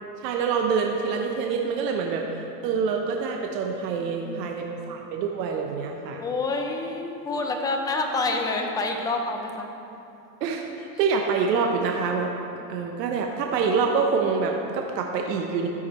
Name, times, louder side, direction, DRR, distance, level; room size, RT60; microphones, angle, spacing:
voice 1, 0.2-6.2 10.4-12.3 12.7-15.7, right 5 dB, 80° right, 2 dB, 1.0 m, -26 dB
voice 2, 4.0-4.6 6.2-9.7, left 3 dB, 10° left, 3 dB, 0.4 m, -28 dB
13.5 x 5.0 x 4.3 m, 2.8 s
supercardioid pair, 130°, 49 cm